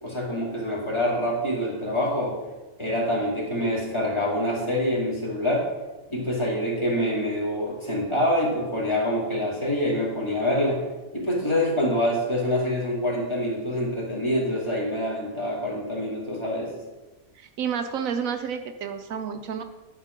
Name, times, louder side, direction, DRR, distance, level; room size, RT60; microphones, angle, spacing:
voice 1, 0.0-2.4 2.8-5.7 6.1-10.8 11.1-16.8, left 1 dB, 20° left, -4 dB, 2.4 m, -26 dB
voice 2, 17.4-19.6, right 7 dB, 75° right, 7 dB, 1.0 m, -30 dB
11.0 x 4.5 x 6.5 m, 1.1 s
omnidirectional pair, 1.5 m